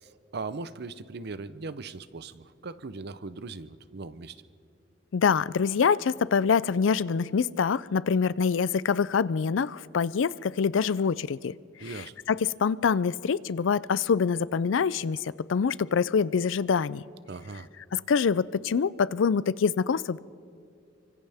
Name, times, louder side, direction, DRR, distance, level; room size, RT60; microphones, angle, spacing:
voice 1, 0.0-4.4 11.8-12.1 17.3-17.7, right 3 dB, 60° right, 14 dB, 0.7 m, -39 dB
voice 2, 5.1-11.5 12.3-17.0 17.9-20.2, left 6 dB, 85° left, 19 dB, 0.4 m, -25 dB
29.5 x 25.0 x 3.5 m, 2.4 s
head